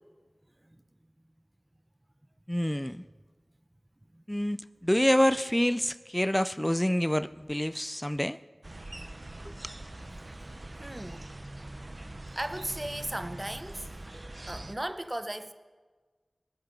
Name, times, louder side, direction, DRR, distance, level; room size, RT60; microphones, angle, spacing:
voice 1, 2.5-3.0 4.3-8.4 9.5-9.6, equal, 10° left, 0.4 m, -27 dB
sound 1, 8.6-14.7, right 1 dB, 45° right, 1.0 m, -43 dB
voice 2, 10.8-11.3 12.4-13.9 14.5-15.5, right 1 dB, 25° right, 0.7 m, -36 dB
19.5 x 10.5 x 5.5 m
wide cardioid pair, 45°, 0 cm